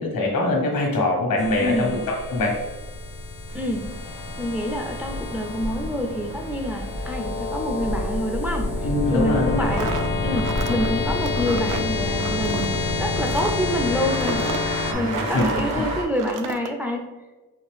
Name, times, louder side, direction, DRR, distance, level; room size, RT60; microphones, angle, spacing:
voice 1, 0.0-2.5 8.8-9.6 14.9-15.4, left 2 dB, 85° left, 0 dB, 1.2 m, -23 dB
sound 1, 1.4-14.9, left 3 dB, 65° left, 0.6 m, -28 dB
voice 2, 1.6-2.0 3.5-3.9 4.4-9.9 10.2-12.7 13.0-14.5 14.9-17.1, left 1 dB, 5° right, 3 dB, 0.3 m, -27 dB
sound 2, 3.5-16.0, right 1 dB, 85° right, 1.2 m, -34 dB
sound 3, 9.6-15.7 16.1-16.7, right 6 dB, 65° right, 0.5 m, -33 dB
4.3 x 3.1 x 3.3 m, 1.2 s
wide cardioid pair, 175°, 34 cm